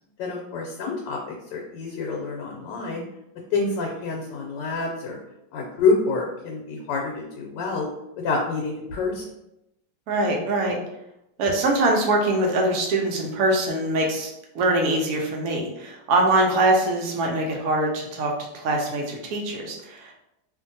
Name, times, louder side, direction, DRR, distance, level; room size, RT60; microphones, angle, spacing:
voice 1, 0.2-3.0 3.5-5.2 5.5-7.9 8.2-9.2, left 4 dB, 85° left, 1 dB, 1.2 m, -27 dB
voice 2, 10.1-10.8 11.4-20.1, right 2 dB, 70° right, 1 dB, 1.0 m, -23 dB
2.7 x 2.5 x 2.6 m, 0.84 s
omnidirectional pair, 1.9 m